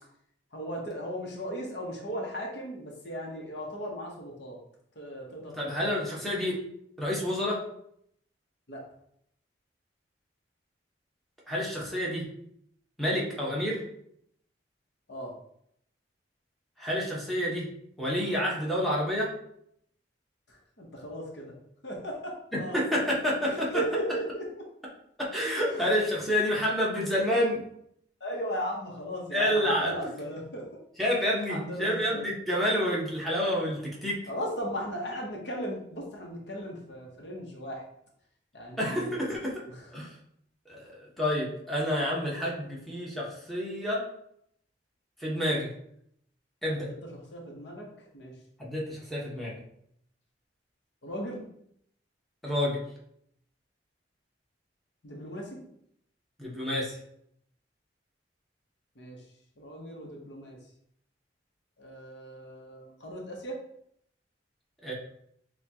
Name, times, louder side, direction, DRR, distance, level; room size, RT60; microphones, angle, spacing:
voice 1, 0.5-4.6 4.9-5.9 8.7-8.8 15.1-15.3 20.5-21.5 21.8-23.1 23.4-24.7 25.7-25.9 26.3-26.8 28.2-30.7 31.5-32.3 34.3-37.8 38.5-39.2 39.7-39.9 46.7-47.9 48.1-48.3 51.0-51.4 55.0-55.6 59.0-59.2 59.6-60.6 61.8-63.6, equal, 70° left, -1 dB, 1.0 m, -37 dB
voice 2, 5.6-6.6 7.0-7.6 11.5-12.2 13.0-13.8 16.8-17.7 18.0-19.3 22.7-23.7 25.2-27.6 29.3-29.9 31.0-34.2 38.8-39.6 39.9-40.1 40.7-44.0 45.2-45.7 46.6-46.9 48.6-49.5 52.4-52.8 56.4-57.0 64.8-64.9, equal, ahead, -6 dB, 1.1 m, -28 dB
6.5 x 2.4 x 2.9 m, 0.71 s
head